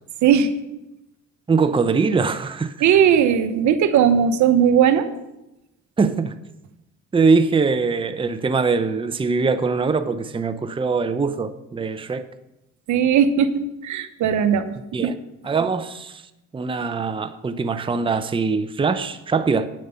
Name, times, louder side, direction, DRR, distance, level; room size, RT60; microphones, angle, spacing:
voice 1, 0.2-0.5 2.8-5.1 12.9-14.7 15.0-15.1, right 8 dB, 75° right, 0.9 m, -17 dB
voice 2, 1.5-2.7 6.0-6.3 7.1-12.3 14.9-15.1 15.4-16.2 16.5-19.7, right 4 dB, 15° right, 0.6 m, -22 dB
8.8 x 7.4 x 5.6 m
cardioid pair, 90°, 30 cm